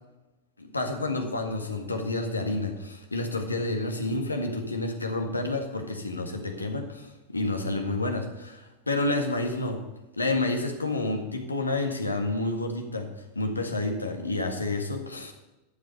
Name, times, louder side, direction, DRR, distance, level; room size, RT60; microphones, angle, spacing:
voice 1, 0.6-9.8 10.2-13.1 13.3-15.3, left 2 dB, 80° left, 4 dB, 1.7 m, -29 dB
11.5 x 7.4 x 6.5 m, 1.0 s
figure-of-eight pair, 90°, 0 cm